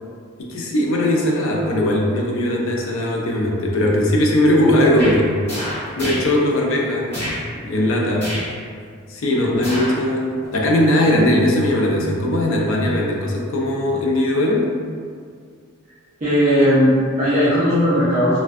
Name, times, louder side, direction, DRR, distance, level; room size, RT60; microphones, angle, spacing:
voice 1, 0.4-5.4 6.0-7.2 7.5-8.3 9.1-14.8, left 1 dB, 65° left, -1 dB, 0.4 m, -19 dB
sound 1, 5.0-5.2 5.4-6.3 7.1-7.4 8.2-8.5 9.6-10.0 10.4-10.5, equal, 30° left, 1.3 m, -28 dB
voice 2, 16.2-18.4, equal, 35° right, -13 dB, 0.5 m, -17 dB
2.5 x 2.1 x 2.4 m, 2.1 s
head